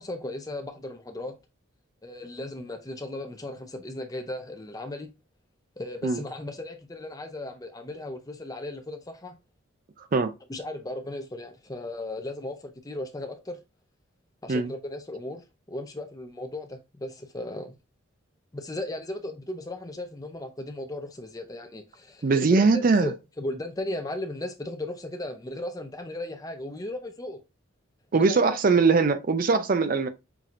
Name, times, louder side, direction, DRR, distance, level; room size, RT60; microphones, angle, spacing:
voice 1, 0.0-1.4 2.0-5.1 5.8-9.4 10.5-13.6 14.4-17.8 18.5-27.4 28.1-28.6, left 1 dB, 20° left, 0.5 m, -36 dB
voice 2, 22.2-23.1 28.1-30.1, right 4 dB, 40° right, 0.4 m, -21 dB
5.8 x 2.8 x 2.5 m
head